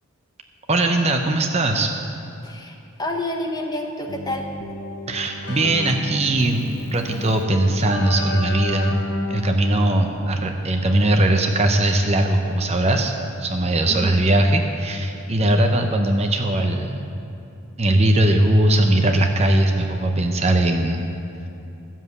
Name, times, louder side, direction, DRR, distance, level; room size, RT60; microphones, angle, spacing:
voice 1, 0.7-1.9 5.1-9.0 9.3-13.1 13.4-17.0 17.8-21.0, right 1 dB, 30° right, 4 dB, 0.7 m, -20 dB
voice 2, 2.4-4.5 13.9-14.2, left 1 dB, 20° left, 2 dB, 1.0 m, -29 dB
Keyboard (musical), 4.1-11.4, left 1 dB, 55° left, 0.8 m, -32 dB
13.0 x 7.4 x 8.1 m, 2.7 s
head